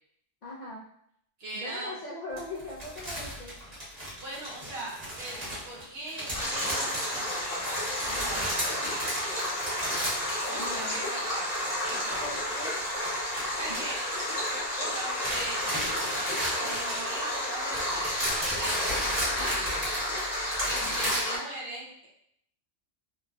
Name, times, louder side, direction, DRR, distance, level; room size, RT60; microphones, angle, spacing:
voice 1, 0.4-0.9 1.5-3.6 8.0-8.4 10.5-11.1 12.2-12.8 18.9-19.3 20.7-21.1, left 1 dB, 60° left, -6 dB, 0.4 m, -41 dB
voice 2, 1.4-2.0 4.1-7.7 8.1-8.9 10.4-12.4 13.5-14.0 14.9-16.0 16.6-18.3 18.6-19.9 20.6-22.1, right 1 dB, 60° right, -5 dB, 1.0 m, -40 dB
sound 1, 2.4-11.1 11.3-14.7 14.9-21.2, equal, 35° right, 1.1 m, -35 dB
Stream, 6.3-21.4, left 1 dB, 35° left, 1.0 m, -31 dB
3.0 x 2.2 x 2.5 m, 0.70 s
omnidirectional pair, 1.2 m